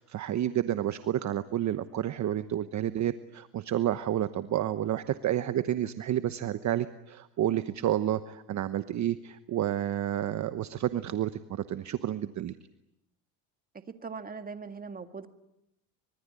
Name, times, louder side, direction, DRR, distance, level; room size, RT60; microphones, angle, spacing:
voice 1, 0.0-12.5, right 11 dB, 40° right, 12 dB, 1.1 m, -30 dB
voice 2, 13.7-15.3, right 5 dB, 20° right, 9 dB, 2.0 m, -40 dB
25.0 x 24.0 x 9.7 m, 0.84 s
cardioid pair, 125°, 45 cm